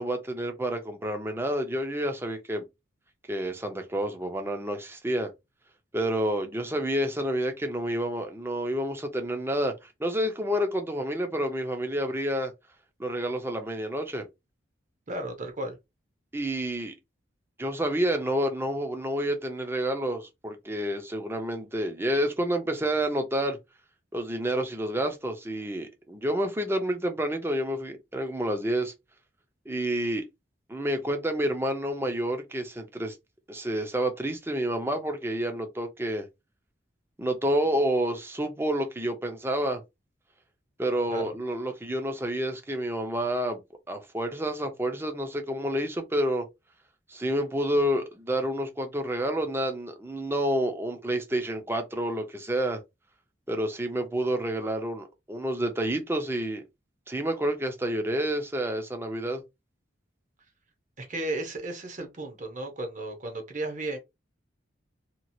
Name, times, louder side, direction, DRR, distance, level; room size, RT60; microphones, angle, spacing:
voice 1, 0.0-2.6 3.3-5.3 5.9-12.5 13.0-14.3 16.3-16.9 17.6-23.6 24.1-28.9 29.7-30.2 30.7-33.1 33.5-36.3 37.2-39.8 40.8-43.6 43.9-46.4 47.1-52.8 53.5-56.6 57.1-59.4, right 1 dB, 10° right, 0.5 m, -29 dB
voice 2, 15.1-15.8 41.1-41.2 61.0-64.0, right 1 dB, 40° right, 0.8 m, -34 dB
2.9 x 2.3 x 2.7 m
head